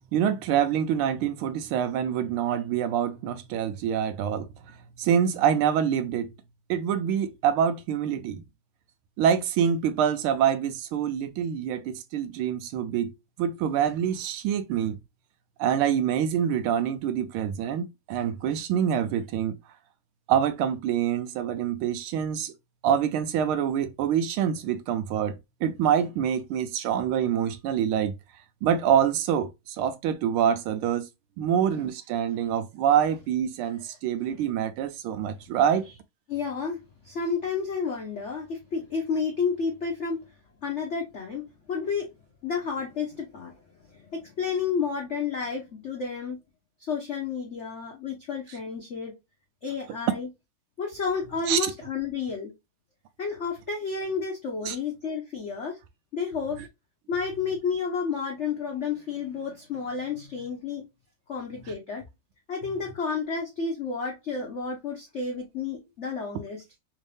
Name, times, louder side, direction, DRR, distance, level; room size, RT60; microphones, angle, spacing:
voice 1, 0.1-4.5 5.0-6.3 6.7-8.4 9.2-13.1 13.4-15.0 15.6-19.6 20.3-22.5 22.8-28.1 28.6-31.1 31.4-35.9 51.5-51.6 54.6-54.8, right 9 dB, 80° right, 1.4 m, -26 dB
voice 2, 36.3-40.2 40.6-42.1 42.4-43.6 43.9-46.4 46.8-49.1 49.6-50.3 50.8-52.5 53.2-55.8 56.1-56.6 57.1-60.8 61.3-62.0 62.5-66.6, left 5 dB, 70° left, 0.6 m, -31 dB
3.7 x 2.6 x 3.2 m
omnidirectional pair, 2.4 m